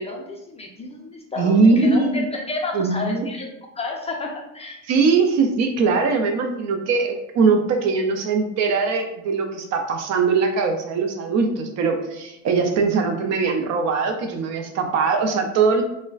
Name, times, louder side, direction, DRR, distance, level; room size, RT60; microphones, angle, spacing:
voice 1, 0.0-3.5 3.8-4.8, left 2 dB, 20° left, 0 dB, 0.4 m, -31 dB
voice 2, 1.4-2.2 2.7-3.3 4.9-15.8, right 4 dB, 50° right, 5 dB, 0.5 m, -21 dB
3.7 x 2.1 x 2.3 m, 0.86 s
supercardioid pair, 95°, 36 cm